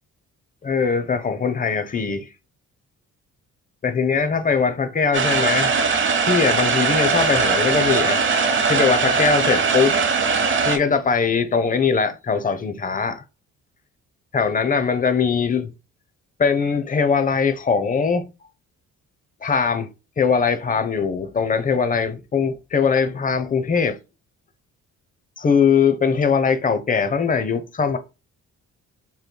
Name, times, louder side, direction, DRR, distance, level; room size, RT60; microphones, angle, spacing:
voice 1, 0.6-2.3 3.8-5.7 6.3-8.2 8.7-10.0 10.6-13.2 14.3-15.7 16.4-18.2 19.4-19.9 20.2-24.0 25.4-28.0, left 5 dB, 25° left, 0.7 m, -21 dB
sound 1, 5.1-10.8, right 5 dB, 40° right, 0.8 m, -20 dB
5.5 x 3.1 x 2.2 m
cardioid pair, 90°, 30 cm